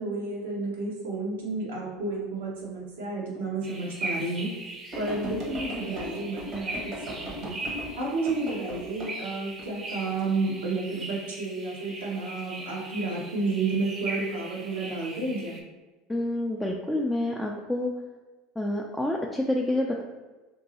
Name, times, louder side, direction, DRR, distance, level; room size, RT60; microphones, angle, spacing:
voice 1, 0.0-4.5 4.9-7.6 8.0-15.6, right 3 dB, 75° right, -3 dB, 0.9 m, -31 dB
sound 1, 3.4-3.5 4.0-4.1 4.9-9.1 9.6-10.2 10.9-11.2, equal, 50° right, 1.0 m, -38 dB
sound 2, 3.6-15.6, right 2 dB, 30° right, 0.7 m, -39 dB
voice 2, 16.1-17.9 18.6-20.0, left 1 dB, 5° left, -1 dB, 0.3 m, -28 dB
2.9 x 2.6 x 2.7 m, 1.2 s
hypercardioid pair, 75°, 0 cm